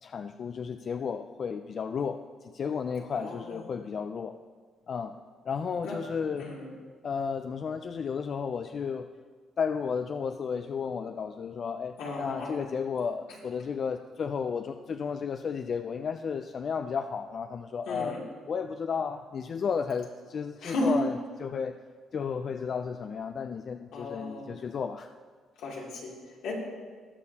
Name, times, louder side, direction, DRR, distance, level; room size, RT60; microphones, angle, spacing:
voice 1, 0.0-4.4 4.9-5.1 5.5-6.5 7.0-9.1 9.6-18.2 18.5-21.1 21.4-21.8 22.1-25.1, left 6 dB, 50° left, 7 dB, 0.4 m, -33 dB
voice 2, 3.1-3.6 5.8-5.9 6.4-6.7 12.0-12.6 17.9-18.2 20.6-20.9 23.9-24.4 25.6-26.5, left 2 dB, 85° left, -4 dB, 2.8 m, -35 dB
19.5 x 6.5 x 2.9 m, 1.5 s
cardioid pair, 95°, 0 cm